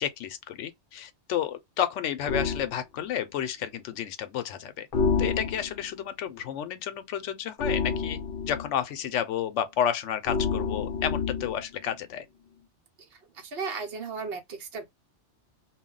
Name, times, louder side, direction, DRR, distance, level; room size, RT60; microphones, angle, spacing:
voice 1, 0.0-4.9 5.2-8.2 8.4-12.2, left 9 dB, 80° left, 0.9 m, -31 dB
sound 1, 2.3-2.7 4.9-5.9 7.6-8.7 10.2-11.6, left 5 dB, 60° left, 0.7 m, -28 dB
voice 2, 13.1-14.9, right 4 dB, 60° right, 0.8 m, -36 dB
2.3 x 2.1 x 3.7 m
omnidirectional pair, 1.2 m